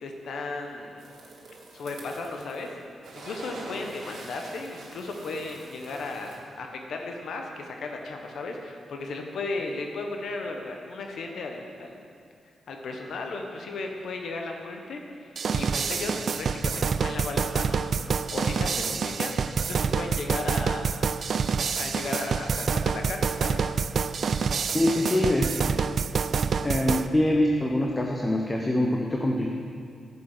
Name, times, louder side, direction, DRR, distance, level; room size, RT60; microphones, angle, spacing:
voice 1, 0.0-1.0 1.7-2.8 3.1-12.0 12.7-20.9 21.7-23.7 25.1-25.3, left 3 dB, 75° left, 2 dB, 1.1 m, -35 dB
sound 1, 1.0-2.7 3.0-6.4, right 2 dB, 80° right, 2.0 m, -45 dB
sound 2, 15.4-27.1, right 6 dB, 60° right, 0.3 m, -27 dB
voice 2, 24.7-25.8 26.6-29.5, left 1 dB, 20° left, 0 dB, 0.9 m, -24 dB
9.9 x 6.9 x 6.7 m, 2.4 s
cardioid pair, 80°, 0 cm